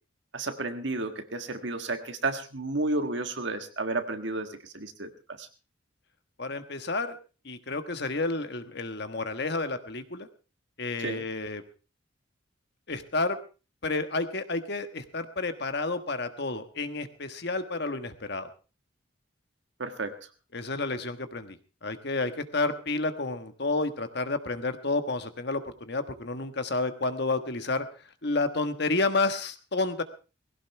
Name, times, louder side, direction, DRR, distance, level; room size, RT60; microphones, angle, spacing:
voice 1, 0.3-5.5 11.0-11.2 19.8-20.2, right 2 dB, 65° right, 7 dB, 1.6 m, -32 dB
voice 2, 6.4-7.2 7.4-10.3 10.8-11.6 12.9-13.4 13.8-18.5 20.5-21.6 21.8-27.9 28.2-30.0, left 3 dB, 55° left, 9 dB, 1.4 m, -30 dB
19.5 x 16.5 x 3.4 m, 0.33 s
head